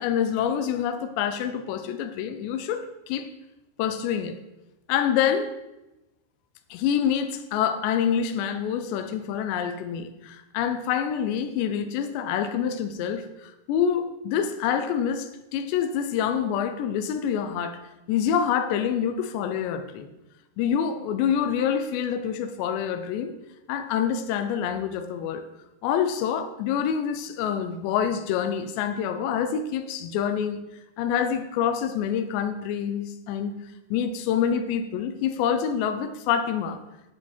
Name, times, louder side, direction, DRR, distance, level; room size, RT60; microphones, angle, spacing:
voice 1, 0.0-3.3 3.8-4.4 4.9-5.5 6.7-17.8 18.1-20.1 20.6-23.3 23.7-25.4 25.8-30.6 31.0-33.5 33.9-36.8, left 8 dB, 80° left, 2.8 m, -26 dB
10.5 x 7.9 x 4.3 m
omnidirectional pair, 5.3 m